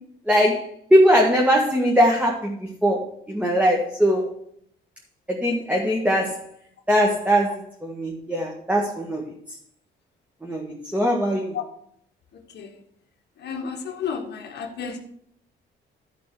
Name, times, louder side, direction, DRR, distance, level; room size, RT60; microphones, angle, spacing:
voice 1, 0.3-3.0 3.3-4.3 5.3-6.4 6.9-9.2 10.4-11.6, equal, 5° right, -2 dB, 1.8 m, -21 dB
voice 2, 12.3-12.8 13.4-15.0, left 6 dB, 60° left, 2 dB, 1.5 m, -32 dB
12.5 x 4.3 x 6.1 m, 0.66 s
cardioid pair, 90°, 20 cm